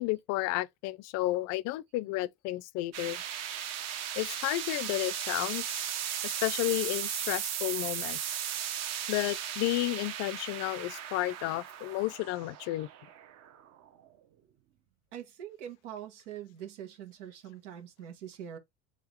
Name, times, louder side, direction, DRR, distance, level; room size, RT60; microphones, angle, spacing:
voice 1, 0.0-3.2 4.2-5.9 6.2-8.2 9.1-12.9, left 18 dB, 50° left, 0.5 m, -32 dB
sound 1, 2.9-14.1, right 10 dB, 45° right, 1.0 m, -36 dB
voice 2, 15.1-18.6, right 10 dB, 85° right, 1.5 m, -43 dB
3.8 x 3.6 x 3.1 m
supercardioid pair, 125°, 35 cm